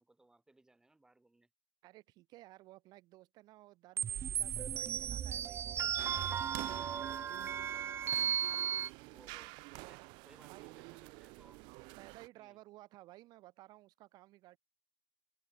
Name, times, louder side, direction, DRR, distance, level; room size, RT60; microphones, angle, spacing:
voice 1, 0.0-1.5 8.4-11.6 12.3-12.6, right 2 dB, 10° right, 4.4 m, -64 dB
voice 2, 1.8-6.7 10.4-10.7 12.0-14.6, right 17 dB, 60° right, 3.6 m, -57 dB
sound 1, 4.0-8.9, right 9 dB, 30° right, 0.7 m, -35 dB
sound 2, 6.0-12.3, right 28 dB, 80° right, 1.1 m, -49 dB
cardioid pair, 145°, 8 cm